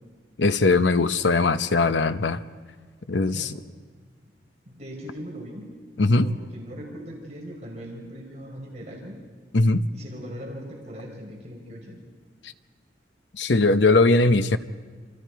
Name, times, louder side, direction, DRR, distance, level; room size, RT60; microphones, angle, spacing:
voice 1, 0.4-2.4 3.1-3.5 6.0-6.4 9.5-9.9 13.4-14.6, left 3 dB, 80° left, 11 dB, 0.8 m, -20 dB
voice 2, 3.2-3.6 4.6-5.7 6.2-9.2 9.9-12.0, equal, 40° right, -2 dB, 4.5 m, -39 dB
28.0 x 27.0 x 4.7 m, 1.6 s
head